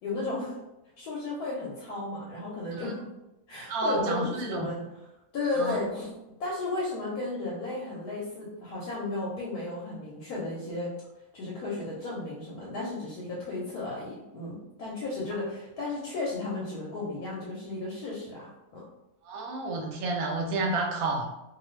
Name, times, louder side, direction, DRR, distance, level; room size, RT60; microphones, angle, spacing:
voice 1, 0.0-0.6 1.0-3.1 3.5-4.8 5.3-6.1 6.4-10.9 11.3-18.8, left 2 dB, 70° left, -5 dB, 1.1 m, -34 dB
voice 2, 3.7-4.7 5.5-5.9 19.2-21.2, right 2 dB, 70° right, 0 dB, 0.9 m, -30 dB
2.5 x 2.4 x 3.1 m, 0.93 s
omnidirectional pair, 1.8 m